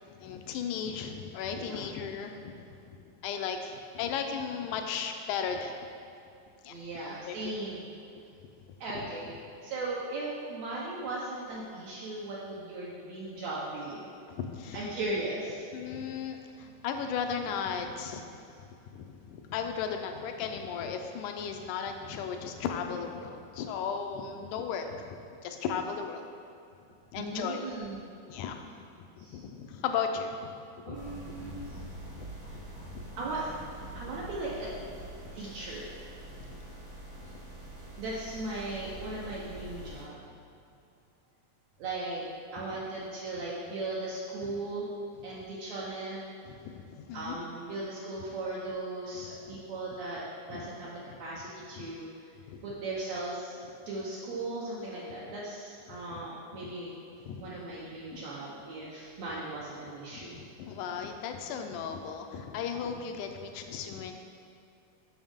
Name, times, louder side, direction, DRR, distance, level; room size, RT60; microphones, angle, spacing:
voice 1, 0.0-2.8 3.2-5.9 6.6-6.7 7.1-7.4 9.0-9.1 14.3-14.9 15.7-18.3 18.9-26.3 27.1-27.6 28.3-28.6 29.2-31.0 31.3-31.4 32.9-33.1 36.4-36.6 46.5-47.5 50.5-50.7 51.1-51.2 52.5-52.6 55.9-56.2 56.6-56.7 57.3-57.5 58.1-58.2 60.1-64.1, left 6 dB, 80° left, 5 dB, 2.0 m, -36 dB
voice 2, 6.7-7.9 8.8-14.1 14.7-15.6 27.2-28.0 29.2-29.4 30.9-31.6 33.2-33.5 34.0-34.7 35.4-35.9 38.0-40.2 41.8-42.3 42.5-44.9 45.2-46.2 47.1-50.2 50.5-52.0 52.6-56.9 57.4-60.4, right 2 dB, 70° right, -6 dB, 1.8 m, -37 dB
sound 1, 30.9-40.0, right 1 dB, 15° right, 0.7 m, -45 dB
7.2 x 6.1 x 3.5 m, 2.6 s
omnidirectional pair, 3.6 m